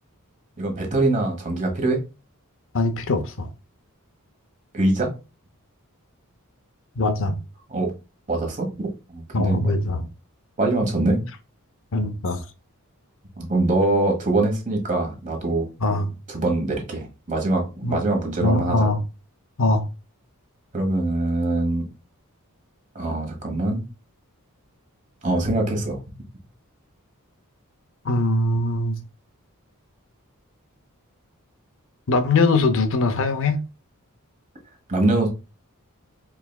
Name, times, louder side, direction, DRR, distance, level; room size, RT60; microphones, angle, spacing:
voice 1, 0.6-2.0 4.7-5.1 7.7-7.9 8.3-9.6 10.6-11.2 13.4-15.6 16.3-18.9 20.7-21.9 22.9-23.8 25.2-26.0 34.9-35.3, right 2 dB, 35° right, 1.2 m, -23 dB
voice 2, 2.7-3.5 7.0-7.4 9.3-10.1 11.9-12.4 15.8-16.1 17.8-18.0 18.4-19.0 19.6-19.9 28.0-29.0 32.1-33.6, left 2 dB, 60° left, 0.6 m, -21 dB
4.6 x 3.3 x 2.3 m
head